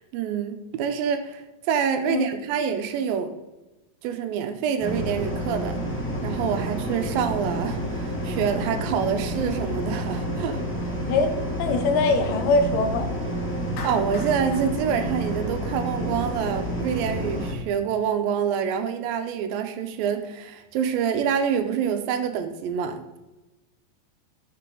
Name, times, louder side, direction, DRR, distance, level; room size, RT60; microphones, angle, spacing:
voice 1, 0.0-3.4 4.0-5.8 6.2-10.7 13.8-23.2, right 7 dB, 90° right, 8 dB, 2.5 m, -26 dB
sound 1, 4.8-17.5, right 1 dB, 10° left, 0.5 m, -29 dB
voice 2, 11.6-13.1, left 3 dB, 75° left, 6 dB, 2.5 m, -22 dB
Clapping, 13.8-16.1, left 5 dB, 90° left, 3.2 m, -41 dB
11.5 x 6.7 x 3.8 m, 1.1 s
omnidirectional pair, 4.1 m